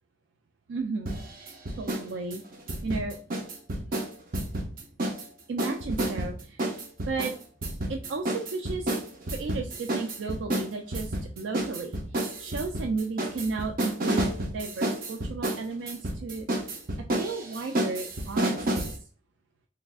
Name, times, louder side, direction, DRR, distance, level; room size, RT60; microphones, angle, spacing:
voice 1, 0.7-2.4 2.8-3.2 5.5-6.6 7.1-7.3 7.9-9.0 9.3-16.7 17.0-19.1, right 4 dB, 80° right, 4 dB, 0.4 m, -34 dB
sound 1, 1.1-2.1 2.3-5.3 5.6-19.0, right 1 dB, 50° right, 0.7 m, -30 dB
3.5 x 3.2 x 2.4 m, 0.38 s
head